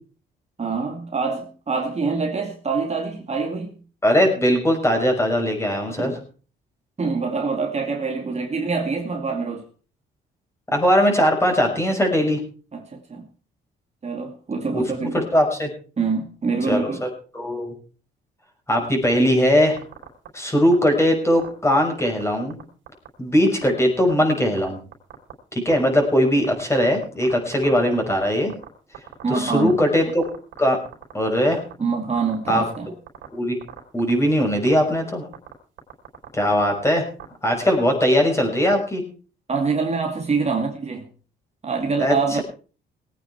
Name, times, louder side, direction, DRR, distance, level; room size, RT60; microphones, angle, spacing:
voice 1, 0.6-3.8 6.0-6.2 7.0-9.6 12.7-13.3 14.0-15.3 16.0-17.0 29.2-29.8 31.8-32.9 39.5-41.1 41.6-42.4, right 4 dB, 35° right, 2.3 m, -25 dB
voice 2, 4.0-6.1 10.7-12.4 14.7-15.7 16.7-17.1 17.3-17.7 18.7-19.8 20.3-22.6 23.2-24.8 25.5-28.5 29.3-30.2 30.6-30.8 31.1-31.6 32.5-32.6 33.3-33.6 33.9-35.2 36.3-37.0 37.4-39.0 42.0-42.4, equal, 15° left, 5.8 m, -20 dB
sound 1, 19.8-20.3 20.6-20.9 21.4-22.6 22.9-23.1 23.5-23.7 24.1-24.2 24.6-25.3 25.7-28.7 28.9-29.7 30.0-30.6 30.9-31.7 32.2-32.8 33.1-33.3 33.6-34.1 34.4-34.5 34.7-35.0 35.3-35.5 35.8-37.2, right 11 dB, 75° right, 4.3 m, -38 dB
20.0 x 9.1 x 4.7 m
cardioid pair, 90°, 20 cm